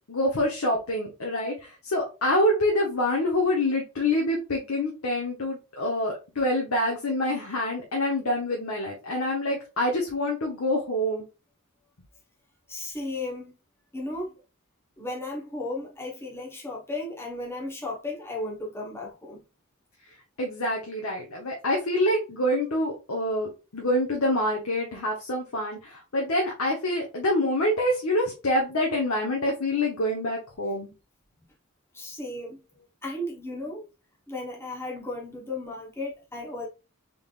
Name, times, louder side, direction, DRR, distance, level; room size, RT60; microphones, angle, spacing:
voice 1, 0.1-11.3 20.4-30.9, left 1 dB, 80° left, 1.0 m, -26 dB
voice 2, 12.7-13.5 13.9-14.3 15.0-19.4 31.9-32.6 33.0-33.8 34.3-36.7, left 2 dB, 10° left, 1.1 m, -35 dB
3.8 x 3.5 x 2.4 m
head